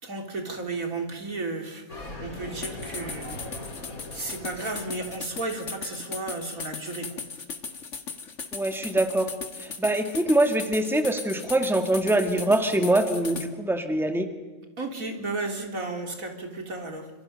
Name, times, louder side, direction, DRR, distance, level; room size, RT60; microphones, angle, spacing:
voice 1, 0.0-3.6 4.1-7.3 14.8-17.1, right 3 dB, 75° right, 3 dB, 3.8 m, -34 dB
sound 1, 1.9-5.8, left 2 dB, 85° left, 4.6 m, -40 dB
sound 2, 2.6-13.5, left 5 dB, 60° left, 2.1 m, -38 dB
voice 2, 8.5-9.3 9.6-14.3, right 1 dB, ahead, 6 dB, 2.0 m, -24 dB
27.5 x 26.5 x 6.7 m, 1.3 s
omnidirectional pair, 1.5 m